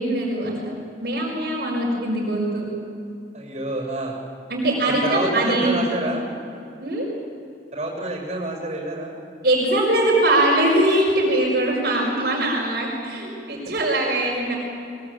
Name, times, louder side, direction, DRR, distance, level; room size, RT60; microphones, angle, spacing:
voice 1, 0.0-2.7 4.5-5.9 6.8-7.1 9.4-14.6, right 1 dB, 55° right, -4 dB, 5.2 m, -22 dB
voice 2, 3.3-4.2 4.9-6.2 7.7-9.1, right 1 dB, 35° right, -1 dB, 6.7 m, -28 dB
22.5 x 22.0 x 8.6 m, 2.6 s
head